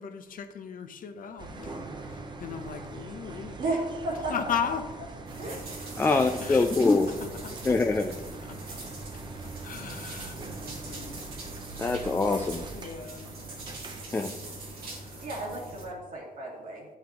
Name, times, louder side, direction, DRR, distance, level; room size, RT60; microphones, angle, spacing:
voice 1, 0.0-3.6 4.3-4.9 6.0-6.7 7.4-7.7 8.4-8.8 9.1-11.5 12.7-13.4 14.8-15.3, left 7 dB, 65° left, 8 dB, 0.7 m, -37 dB
sound 1, 1.4-15.2, right 3 dB, 30° right, 0.7 m, -43 dB
voice 2, 3.6-4.3 5.4-5.6 15.2-16.9, right 2 dB, 60° right, -4 dB, 2.2 m, -33 dB
sound 2, 5.3-15.8, right 2 dB, 85° right, 2.4 m, -42 dB
voice 3, 6.0-7.1 7.6-8.1 11.8-12.7 14.1-14.3, left 3 dB, 15° left, 5 dB, 0.3 m, -24 dB
11.0 x 5.8 x 2.9 m, 1.2 s
wide cardioid pair, 160°, 15 cm